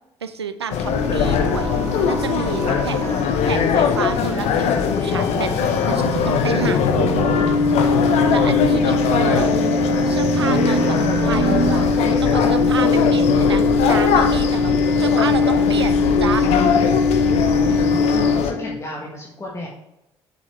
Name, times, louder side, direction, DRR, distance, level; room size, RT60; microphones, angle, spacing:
voice 1, 0.2-1.7 2.1-3.1 3.5-7.4 8.3-9.5 10.0-11.0 11.2-16.5, right 6 dB, 85° right, 11 dB, 0.4 m, -29 dB
sound 1, 0.7-18.5, left 7 dB, 55° left, 0.8 m, -21 dB
sound 2, 0.9-11.9, right 4 dB, 65° right, 1.3 m, -28 dB
voice 2, 3.0-3.3 9.1-9.5 10.5-11.1 13.1-13.4 17.6-19.7, left 1 dB, 20° left, -2 dB, 1.5 m, -34 dB
sound 3, 4.8-18.8, left 3 dB, 75° left, 1.0 m, -21 dB
6.8 x 5.4 x 4.5 m, 0.88 s
figure-of-eight pair, 50°, 13 cm